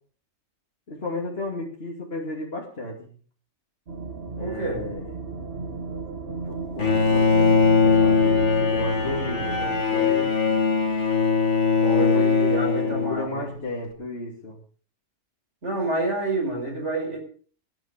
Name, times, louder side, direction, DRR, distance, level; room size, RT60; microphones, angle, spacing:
voice 1, 0.9-3.1 4.4-5.1 6.4-7.5 7.8-10.3 12.0-12.3 12.8-14.6, left 2 dB, 60° left, -2 dB, 2.9 m, -33 dB
sound 1, 3.9-9.8, right 3 dB, 55° right, 1.9 m, -33 dB
voice 2, 4.4-4.8 11.8-13.5 15.6-17.2, right 2 dB, 85° right, 0 dB, 5.6 m, -28 dB
Bowed string instrument, 6.8-13.6, left 5 dB, 85° left, 2.9 m, -21 dB
19.0 x 11.0 x 5.2 m, 0.43 s
omnidirectional pair, 1.2 m